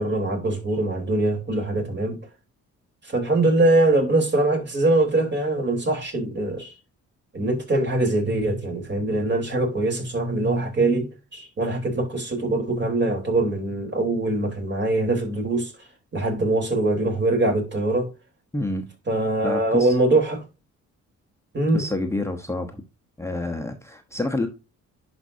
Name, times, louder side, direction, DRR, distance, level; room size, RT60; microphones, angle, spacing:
voice 1, 0.0-2.2 3.0-6.7 7.3-18.1 19.1-20.4 21.5-21.8, right 2 dB, 35° right, 3.8 m, -23 dB
voice 2, 18.5-18.9 19.4-19.9 21.7-22.8 23.2-24.5, left 2 dB, 10° left, 1.0 m, -28 dB
10.5 x 5.3 x 2.7 m
cardioid pair, 90°, 30 cm